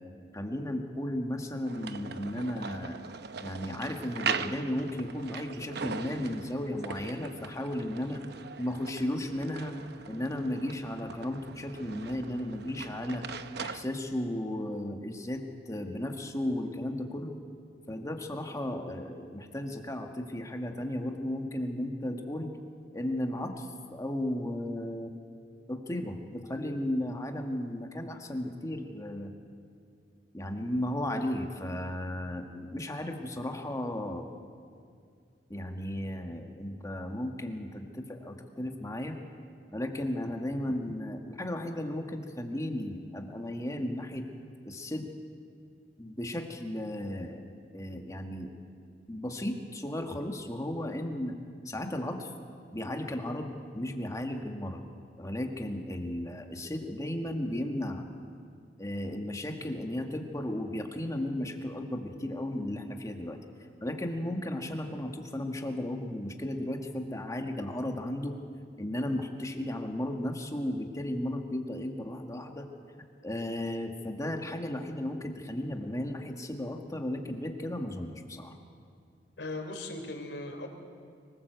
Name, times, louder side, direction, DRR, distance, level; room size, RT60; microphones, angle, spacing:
voice 1, 0.3-3.0 3.4-8.2 8.6-9.8 10.1-13.2 13.6-17.3 17.9-22.5 22.9-25.1 25.7-29.3 30.3-34.3 35.5-39.2 39.7-44.2 44.7-45.1 46.0-48.5 49.1-51.3 51.7-52.3 52.7-54.8 55.2-58.0 58.8-63.4 63.8-68.4 68.8-72.7 73.2-78.6, left 1 dB, 20° left, 3 dB, 1.8 m, -35 dB
sound 1, 1.7-13.8, right 6 dB, 65° right, 0.8 m, -40 dB
voice 2, 79.4-80.7, left 2 dB, 85° left, 4 dB, 3.5 m, -38 dB
25.0 x 18.0 x 8.1 m, 2.3 s
head